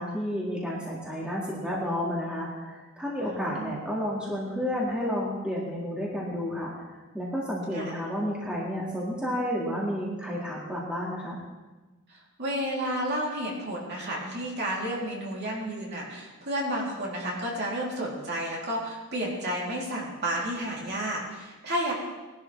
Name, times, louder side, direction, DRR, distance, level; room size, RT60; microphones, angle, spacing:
voice 1, 0.0-11.4, equal, 5° right, -6 dB, 2.3 m, -31 dB
voice 2, 3.3-3.8 7.7-7.9 12.1-21.9, right 1 dB, 50° right, -4 dB, 3.5 m, -31 dB
20.0 x 12.0 x 3.5 m, 1.2 s
head